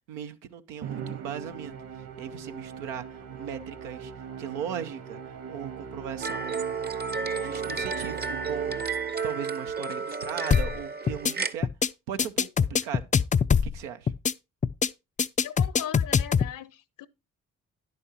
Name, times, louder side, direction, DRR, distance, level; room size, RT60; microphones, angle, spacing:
voice 1, 0.1-1.7 2.2-6.6 7.4-11.7 12.1-13.1 13.6-14.1, right 8 dB, 85° right, 0.8 m, -38 dB
Musical instrument, 0.8-9.4, right 6 dB, 65° right, 2.1 m, -40 dB
sound 1, 6.2-11.5, right 5 dB, 25° right, 0.7 m, -32 dB
sound 2, 10.5-10.8 11.1-11.3 11.6-11.9 12.2-13.8 14.1-14.3 14.6-14.9 15.2-16.5, left 6 dB, 20° left, 0.4 m, -23 dB
voice 2, 15.4-17.1, left 10 dB, 55° left, 0.8 m, -39 dB
10.5 x 8.5 x 2.8 m
hypercardioid pair, 45°, 38 cm